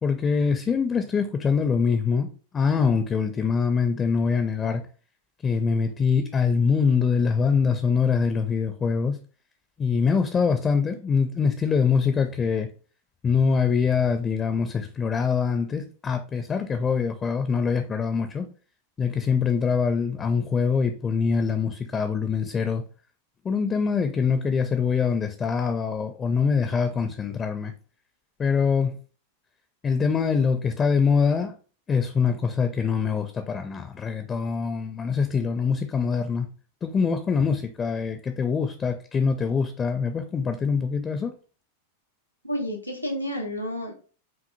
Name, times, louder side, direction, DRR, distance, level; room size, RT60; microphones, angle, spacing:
voice 1, 0.0-2.3 2.5-4.8 5.4-9.2 9.8-12.7 13.2-18.5 19.0-22.8 23.4-27.7 28.4-28.9 29.8-31.5 31.9-36.5 36.8-41.3, left 5 dB, 20° left, 0.4 m, -24 dB
voice 2, 42.4-43.9, equal, 85° left, 0.9 m, -30 dB
5.2 x 2.6 x 2.5 m
figure-of-eight pair, 90°, 0 cm